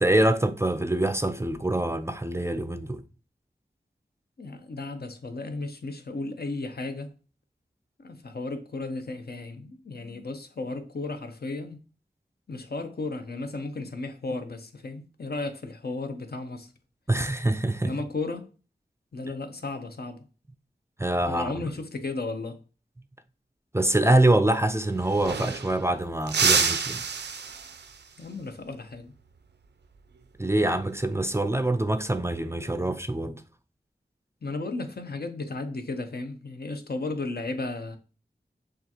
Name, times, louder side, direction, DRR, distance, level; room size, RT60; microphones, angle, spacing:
voice 1, 0.0-3.0 17.1-17.9 21.0-21.5 23.7-27.0 30.4-33.4, right 1 dB, 15° right, 0.4 m, -25 dB
voice 2, 4.4-7.1 8.0-11.8 12.5-16.7 17.8-18.5 19.1-20.3 21.3-22.6 28.2-29.1 34.4-38.0, left 3 dB, 60° left, 0.7 m, -34 dB
sound 1, 24.6-24.7 24.9-25.9 26.3-28.0 30.5-30.8 32.2-32.7, right 5 dB, 75° right, 0.4 m, -28 dB
6.6 x 2.4 x 2.9 m
wide cardioid pair, 50°, 18 cm